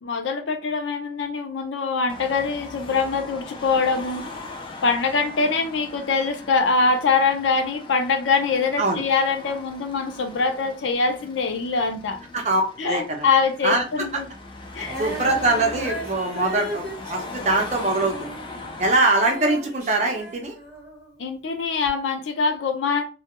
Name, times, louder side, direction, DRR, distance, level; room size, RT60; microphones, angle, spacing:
voice 1, 0.0-4.3 4.8-12.2 12.8-14.3 14.7-15.0 21.2-23.0, left 4 dB, 85° left, 0.5 m, -23 dB
Car passing by / Traffic noise roadway noise / Engine, 2.1-19.0, left 3 dB, 25° left, 0.4 m, -39 dB
voice 2, 12.3-13.3 13.6-14.1 14.8-18.3 18.8-20.6, right 2 dB, 40° right, 0.6 m, -23 dB
Female singing, 14.8-21.2 21.8-21.9, right 1 dB, 15° right, 1.0 m, -36 dB
2.3 x 2.2 x 2.9 m
head